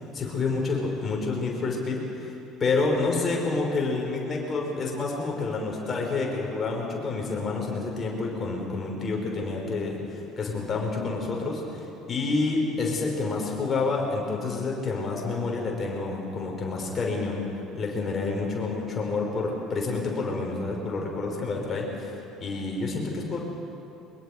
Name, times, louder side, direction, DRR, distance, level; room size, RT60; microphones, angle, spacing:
voice 1, 0.1-2.0 2.6-11.6 12.1-17.4 17.7-22.1 22.4-23.4, left 3 dB, 35° left, -1 dB, 5.5 m, -28 dB
23.5 x 21.5 x 5.4 m, 2.8 s
figure-of-eight pair, 60°, 0 cm